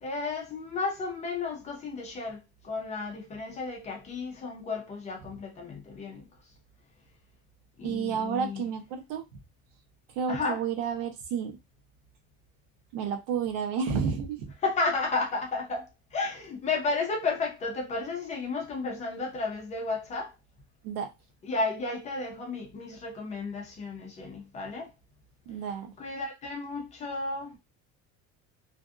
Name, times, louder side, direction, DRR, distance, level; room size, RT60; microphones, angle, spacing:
voice 1, 0.0-6.2 7.8-8.6 10.3-10.6 14.6-20.3 21.4-24.9 26.0-27.5, left 3 dB, 20° left, 0.5 m, -33 dB
voice 2, 7.8-9.2 10.2-11.6 12.9-14.4 20.8-21.1 25.5-25.9, right 7 dB, 90° right, 0.8 m, -31 dB
2.6 x 2.4 x 2.3 m
cardioid pair, 175°, 33 cm